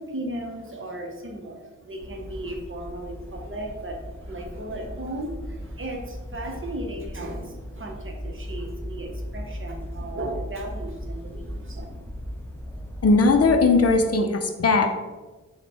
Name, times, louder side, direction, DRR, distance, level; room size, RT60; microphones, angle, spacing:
voice 1, 0.0-11.9, right 1 dB, 40° right, 1 dB, 0.7 m, -36 dB
sound 1, 2.0-14.1, equal, 5° left, 0.9 m, -37 dB
voice 2, 13.0-14.9, left 3 dB, 50° left, 4 dB, 0.4 m, -18 dB
4.4 x 2.2 x 4.2 m, 1.2 s
wide cardioid pair, 90°, 32 cm